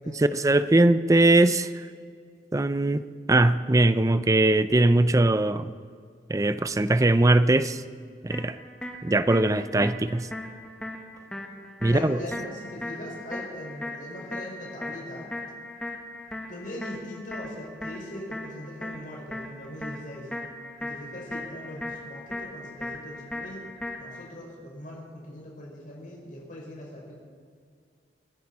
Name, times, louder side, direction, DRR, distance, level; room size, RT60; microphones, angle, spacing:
voice 1, 0.1-1.7 2.5-5.7 6.3-7.8 8.2-8.6 9.0-10.3 11.8-12.2, right 2 dB, 20° right, 12 dB, 0.5 m, -21 dB
sound 1, 8.3-24.3, left 1 dB, 5° left, 1.6 m, -38 dB
voice 2, 11.9-15.3 16.5-20.3 20.8-23.7 23.9-27.2, left 1 dB, 50° left, -3 dB, 5.1 m, -40 dB
27.0 x 10.5 x 4.2 m, 2.2 s
head